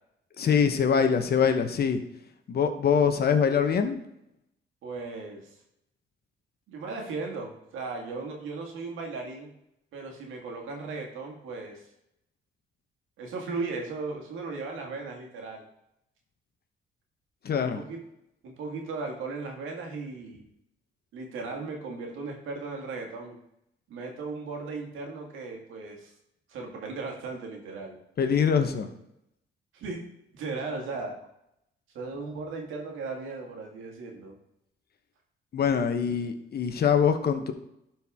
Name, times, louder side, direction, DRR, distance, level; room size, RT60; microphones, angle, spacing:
voice 1, 0.4-2.0 2.5-4.0 17.4-17.8 28.2-28.9 35.5-37.5, left 7 dB, 50° left, 8 dB, 1.0 m, -24 dB
voice 2, 4.8-5.5 6.7-9.5 9.9-11.8 13.2-15.6 17.6-18.0 18.4-20.4 21.1-23.4 23.9-26.1 26.5-28.0 29.7-30.0 30.3-31.2 31.9-34.4, right 3 dB, 85° right, 1 dB, 1.9 m, -36 dB
12.0 x 4.5 x 3.6 m, 0.81 s
cardioid pair, 90°, 20 cm